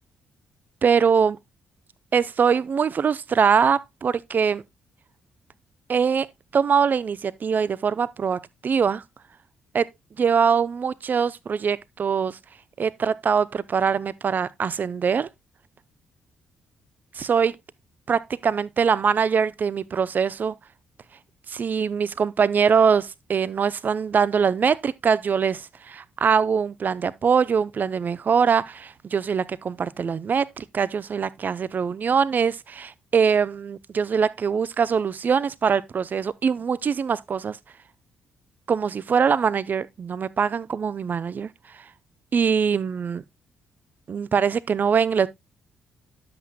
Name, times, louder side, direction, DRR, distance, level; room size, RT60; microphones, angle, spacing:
voice 1, 0.8-1.4 2.1-4.6 5.9-6.3 6.5-9.0 9.7-9.9 10.2-12.4 12.8-15.3 17.2-17.6 18.1-20.5 21.5-37.6 38.7-41.5 42.3-43.2 44.1-45.3, right 6 dB, 45° right, 0.5 m, -23 dB
10.0 x 7.8 x 2.2 m
figure-of-eight pair, 40°, 4 cm